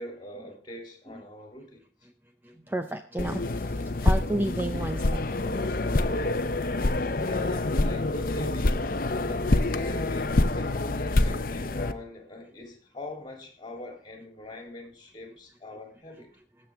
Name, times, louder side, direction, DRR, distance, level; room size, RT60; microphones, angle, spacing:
voice 1, 0.0-1.8 7.2-8.8 9.2-16.3, left 1 dB, 25° left, 3.1 m, -43 dB
voice 2, 2.4-5.2, right 1 dB, 10° right, 0.5 m, -32 dB
sound 1, 3.2-11.9, left 2 dB, 50° left, 0.7 m, -26 dB
20.5 x 7.5 x 3.5 m
head